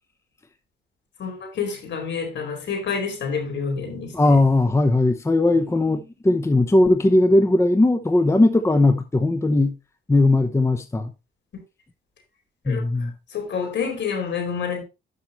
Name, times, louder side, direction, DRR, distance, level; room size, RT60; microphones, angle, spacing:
voice 1, 1.2-4.4 12.7-14.8, left 6 dB, 65° left, 4.5 m, -28 dB
voice 2, 4.1-9.8 10.1-11.1 12.7-13.1, left 2 dB, 15° left, 0.8 m, -18 dB
11.5 x 5.7 x 3.1 m
cardioid pair, 90°, 20 cm